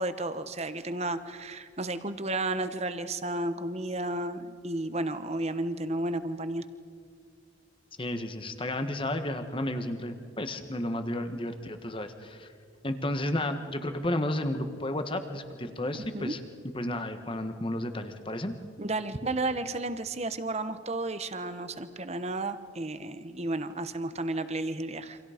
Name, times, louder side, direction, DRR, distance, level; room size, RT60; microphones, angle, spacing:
voice 1, 0.0-6.6 16.1-16.3 18.8-25.2, right 2 dB, 30° right, 11 dB, 1.0 m, -32 dB
voice 2, 8.0-12.5 12.8-16.4 16.7-18.6, left 1 dB, 25° left, 8 dB, 1.4 m, -32 dB
28.5 x 26.0 x 5.1 m, 2.3 s
head